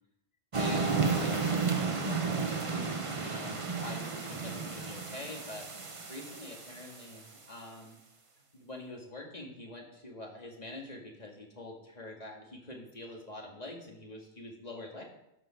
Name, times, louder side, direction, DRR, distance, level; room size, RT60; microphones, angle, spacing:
voice 1, 0.5-5.7 6.1-8.0 8.5-15.0, left 1 dB, 35° left, 0 dB, 2.2 m, -45 dB
sound 1, 0.5-7.2, right 4 dB, 30° right, 0.8 m, -33 dB
13.5 x 5.4 x 6.0 m, 0.84 s
omnidirectional pair, 1.2 m